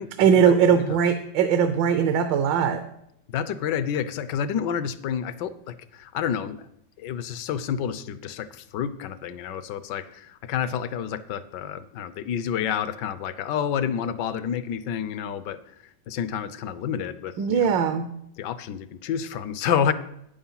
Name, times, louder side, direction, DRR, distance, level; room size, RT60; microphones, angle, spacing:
voice 1, 0.2-2.8 17.4-18.1, right 7 dB, 75° right, 9 dB, 1.4 m, -20 dB
voice 2, 3.3-6.6 7.0-15.6 16.1-17.7 18.4-19.9, left 8 dB, 75° left, 14 dB, 1.2 m, -29 dB
9.3 x 7.1 x 5.6 m, 0.76 s
omnidirectional pair, 2.1 m